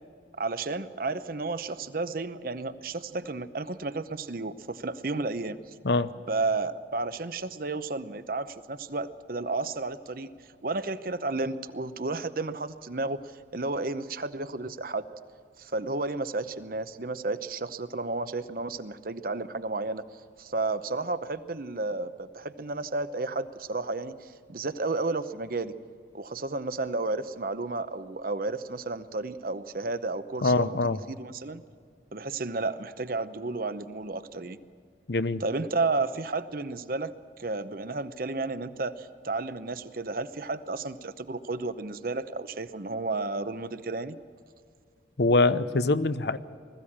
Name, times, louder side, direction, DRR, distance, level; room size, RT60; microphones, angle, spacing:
voice 1, 0.4-5.6 6.3-10.3 10.6-13.2 13.5-15.1 15.6-20.0 20.4-25.7 26.1-31.6 32.1-34.6 35.4-37.1 37.4-44.1, right 3 dB, 50° right, 12 dB, 0.8 m, -32 dB
voice 2, 30.4-31.0 35.1-35.4 45.2-46.4, left 2 dB, 65° left, 13 dB, 0.7 m, -24 dB
20.5 x 15.0 x 8.7 m, 2.2 s
head